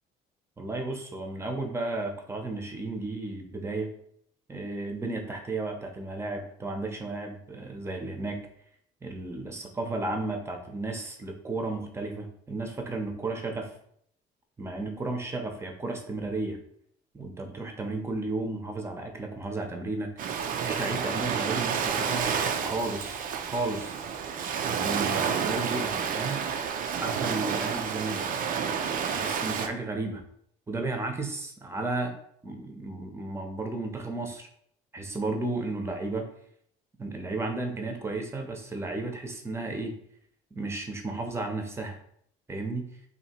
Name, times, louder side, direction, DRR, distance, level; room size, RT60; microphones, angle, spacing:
voice 1, 0.6-3.9 4.5-8.4 9.0-13.7 14.6-16.6 17.1-20.1 20.6-24.0 24.7-26.4 26.9-28.2 28.6-30.2 30.7-32.1 32.4-34.5 34.9-36.3 37.0-40.0 40.5-42.0 42.5-42.8, right 2 dB, 15° right, 4 dB, 0.7 m, -33 dB
Ocean, 20.2-29.7, right 7 dB, 55° right, 0.4 m, -30 dB
2.8 x 2.7 x 4.2 m, 0.67 s
cardioid pair, 110°, 17 cm